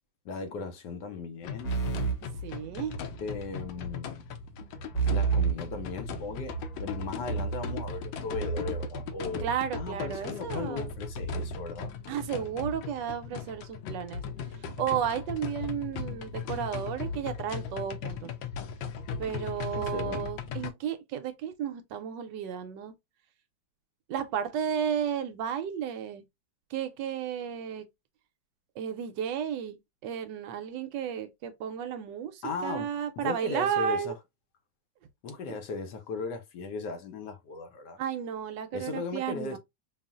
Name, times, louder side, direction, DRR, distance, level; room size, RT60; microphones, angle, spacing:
voice 1, 0.2-1.8 3.2-4.2 5.1-9.5 9.8-11.9 19.7-20.3 32.4-34.2 35.2-38.0 38.7-39.6, left 4 dB, 70° left, 1.1 m, -37 dB
sound 1, 1.4-20.7, left 3 dB, 85° left, 1.4 m, -37 dB
sound 2, 1.6-3.3 4.9-6.7, right 6 dB, 40° left, 0.9 m, -30 dB
voice 2, 2.4-3.0 9.4-10.9 12.1-14.2 14.8-18.3 19.2-22.9 24.1-26.2 26.7-27.8 28.8-29.8 30.0-34.1 35.5-35.6 38.0-39.6, right 8 dB, 75° right, 1.1 m, -33 dB
5.3 x 2.4 x 2.3 m
omnidirectional pair, 2.1 m